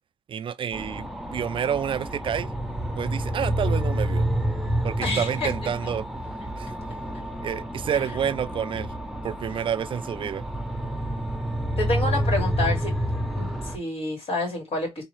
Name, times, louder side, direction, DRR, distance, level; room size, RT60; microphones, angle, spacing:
voice 1, 0.3-2.5 3.0-4.3 4.8-6.1 6.6-6.7 7.4-8.9 9.2-10.4, right 8 dB, 55° right, 0.3 m, -29 dB
sound 1, 0.7-13.8, equal, ahead, 0.8 m, -29 dB
voice 2, 5.0-5.5 5.8-5.9 7.9-8.0 11.8-12.9 13.3-15.0, left 2 dB, 70° left, 2.4 m, -28 dB
3.8 x 2.7 x 3.1 m
cardioid pair, 100°, 10 cm